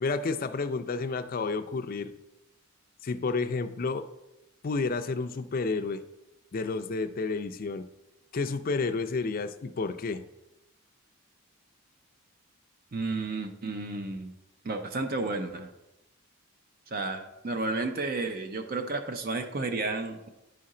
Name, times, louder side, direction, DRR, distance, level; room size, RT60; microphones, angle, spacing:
voice 1, 0.0-2.1 3.0-4.1 4.6-6.0 6.5-7.9 8.3-10.2, left 4 dB, 40° left, 9 dB, 0.4 m, -30 dB
voice 2, 12.9-14.3 14.6-15.7 16.9-20.3, right 3 dB, 45° right, 7 dB, 0.5 m, -32 dB
10.5 x 4.3 x 3.8 m, 0.94 s
head